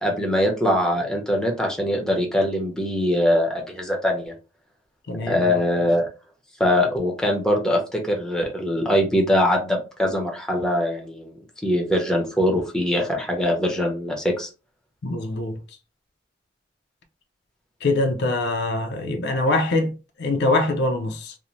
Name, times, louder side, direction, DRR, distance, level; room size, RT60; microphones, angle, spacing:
voice 1, 0.0-4.3 5.2-6.1 6.6-14.5, left 1 dB, 5° left, 0.6 m, -22 dB
voice 2, 5.1-5.5 15.0-15.6 17.8-21.3, left 2 dB, 65° left, 0.5 m, -23 dB
2.6 x 2.1 x 3.0 m
head